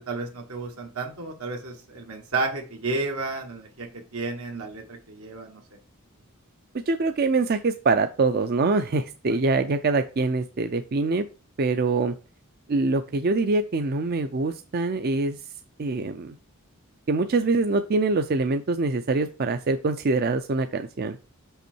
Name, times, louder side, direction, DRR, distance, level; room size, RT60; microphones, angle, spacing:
voice 1, 0.0-5.6 9.3-9.4, right 3 dB, 80° right, 1 dB, 1.4 m, -32 dB
voice 2, 6.9-11.2 11.6-12.1 12.7-15.4 15.8-16.4 17.1-21.2, right 3 dB, 45° right, 9 dB, 0.4 m, -24 dB
6.2 x 5.6 x 4.4 m, 0.33 s
head